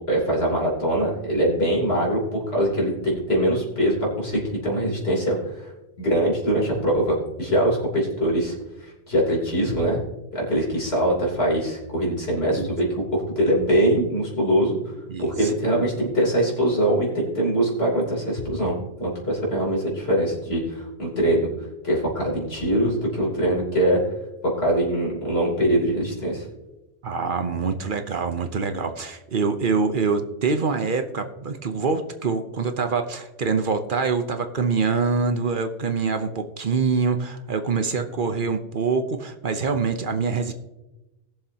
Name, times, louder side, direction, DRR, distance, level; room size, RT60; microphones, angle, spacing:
voice 1, 0.1-5.7 6.0-8.6 8.8-10.0 10.3-12.9 13.1-14.8 15.2-21.5 21.8-24.0 24.6-26.5, right 1 dB, 75° left, -4 dB, 3.6 m, -23 dB
voice 2, 15.1-15.5 27.0-40.5, right 5 dB, 55° right, 7 dB, 0.9 m, -25 dB
20.0 x 7.0 x 2.8 m, 1.0 s
omnidirectional pair, 1.1 m